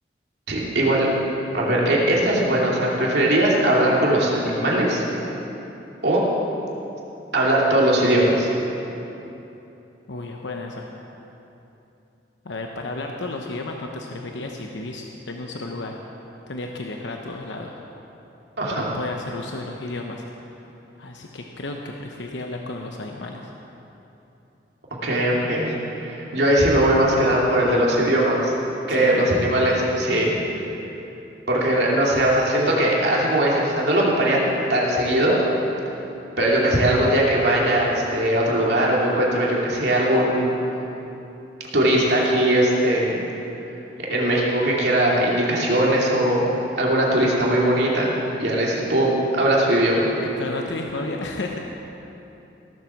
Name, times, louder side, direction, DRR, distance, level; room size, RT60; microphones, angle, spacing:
voice 1, 0.5-1.1 1.5-5.0 6.0-6.2 7.3-8.5 18.6-18.9 25.0-28.5 28.9-30.3 31.5-34.4 34.7-35.4 36.4-40.5 41.7-43.2 44.0-46.5 46.8-48.1 48.4-50.1, right 1 dB, 65° right, -4 dB, 2.8 m, -20 dB
voice 2, 10.1-10.9 12.4-16.0 16.5-17.7 18.7-20.6 21.0-23.5 28.9-29.3 41.7-42.3 50.2-51.6, left 2 dB, 80° left, 1 dB, 0.9 m, -33 dB
17.0 x 7.6 x 7.2 m, 3.0 s
head